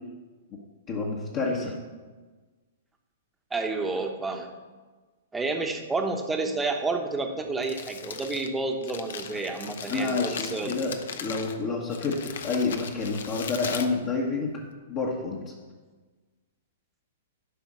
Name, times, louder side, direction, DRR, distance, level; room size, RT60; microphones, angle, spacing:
voice 1, 0.9-1.7 9.9-14.5 14.9-15.4, left 4 dB, 35° left, -2 dB, 1.3 m, -29 dB
voice 2, 3.5-4.5 5.3-10.7, right 3 dB, 10° right, 3 dB, 1.1 m, -30 dB
Crumpling crinkling, 7.4-14.7, left 6 dB, 60° left, 0.8 m, -39 dB
12.0 x 5.2 x 6.1 m, 1.3 s
figure-of-eight pair, 110°, 0 cm